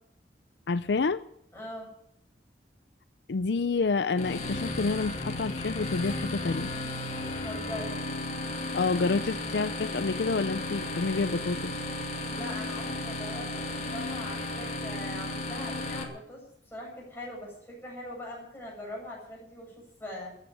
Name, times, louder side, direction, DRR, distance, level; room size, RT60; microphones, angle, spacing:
voice 1, 0.7-1.2 3.3-6.7 8.7-11.8, left 4 dB, 70° left, 14 dB, 0.5 m, -28 dB
voice 2, 1.5-1.9 7.3-8.0 12.3-20.4, left 1 dB, 10° left, -3 dB, 7.8 m, -42 dB
sound 1, 4.2-16.0, left 2 dB, 40° left, 2.3 m, -34 dB
14.5 x 9.9 x 9.0 m, 0.72 s
head